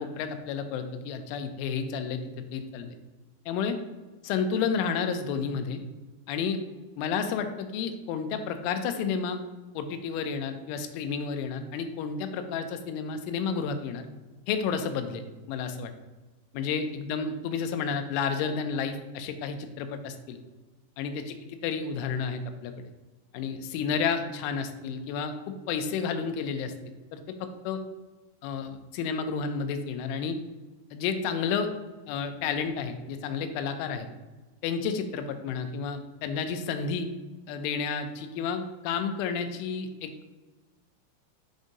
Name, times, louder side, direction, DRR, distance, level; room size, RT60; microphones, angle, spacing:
voice 1, 0.0-2.2 2.5-3.0 3.5-3.8 4.2-5.8 6.3-6.6 7.0-9.4 9.7-14.1 14.5-15.9 16.5-20.4 21.0-21.4 21.6-22.9 23.3-26.7 27.1-27.8 28.4-30.4 30.9-31.7 32.1-34.1 34.6-37.1 37.5-40.3, left 6 dB, 85° left, 8 dB, 3.0 m, -31 dB
7.3 x 2.7 x 5.1 m, 1.2 s
omnidirectional pair, 5.5 m